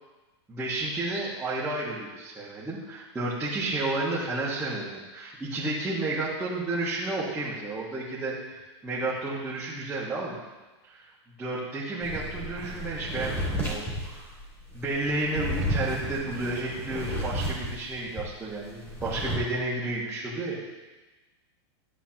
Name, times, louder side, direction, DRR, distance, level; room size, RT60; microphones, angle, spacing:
voice 1, 0.5-10.4 10.8-11.0 11.4-14.3 14.7-20.7, right 2 dB, 10° right, -9 dB, 1.6 m, -31 dB
sound 1, 12.0-18.3 18.6-19.4, equal, 15° left, 2.9 m, -33 dB
14.0 x 8.1 x 3.0 m, 1.2 s
supercardioid pair, 155°, 15 cm